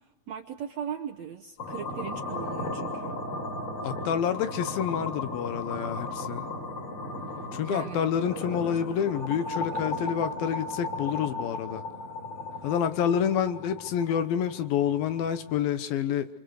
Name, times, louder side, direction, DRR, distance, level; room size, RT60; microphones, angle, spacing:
voice 1, 0.0-3.2 7.6-8.4, right 8 dB, 70° right, 1.7 m, -38 dB
sound 1, 1.6-15.6, left 2 dB, 35° left, 5.5 m, -36 dB
voice 2, 3.8-6.4 7.5-11.8 12.6-16.3, left 8 dB, 75° left, 2.8 m, -28 dB
28.5 x 25.0 x 6.5 m
omnidirectional pair, 4.4 m